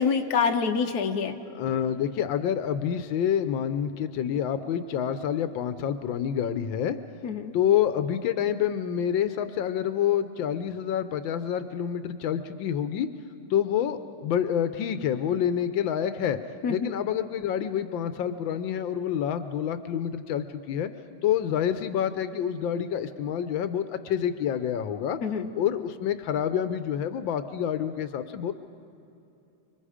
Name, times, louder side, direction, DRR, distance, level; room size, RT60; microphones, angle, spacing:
voice 1, 0.0-1.4 7.2-7.5 16.6-16.9 25.2-25.5, left 6 dB, 60° left, 4 dB, 1.5 m, -26 dB
voice 2, 1.4-7.0 7.5-13.1 13.5-16.4 16.7-20.9 21.2-25.2 25.5-28.5, left 9 dB, 85° left, 11 dB, 1.5 m, -27 dB
26.0 x 24.0 x 5.0 m, 2.7 s
omnidirectional pair, 2.0 m